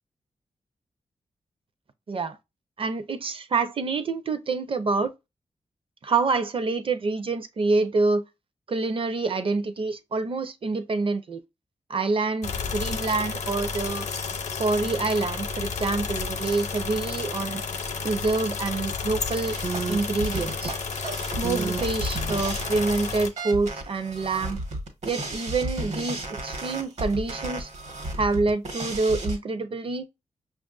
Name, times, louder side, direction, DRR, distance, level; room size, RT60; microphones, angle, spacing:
voice 1, 2.8-5.1 6.0-8.2 8.7-11.4 11.9-14.1 14.6-17.6 18.0-19.6 19.9-20.8 21.4-24.6 25.0-27.7 28.2-30.1, right 3 dB, 45° right, 0.6 m, -26 dB
sound 1, 12.4-23.3, left 5 dB, 70° left, 0.7 m, -31 dB
sound 2, 19.4-29.4, right 2 dB, 65° right, 1.1 m, -33 dB
5.8 x 2.4 x 2.4 m
wide cardioid pair, 125°, 12 cm